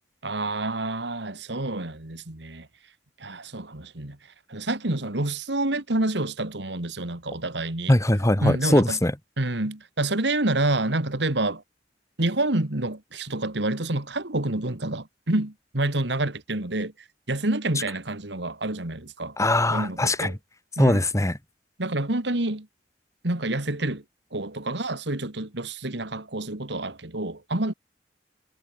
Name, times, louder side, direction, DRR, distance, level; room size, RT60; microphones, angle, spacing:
voice 1, 0.2-2.7 3.2-4.2 4.5-8.0 8.4-9.0 9.4-11.6 12.2-16.9 17.3-19.4 19.7-20.4 20.8-21.0 21.8-22.7 23.2-24.0 24.3-27.7, right 2 dB, 70° right, 2.5 m, -28 dB
voice 2, 7.9-9.1 19.4-20.3 20.8-21.3, left 1 dB, 15° left, 1.8 m, -21 dB
head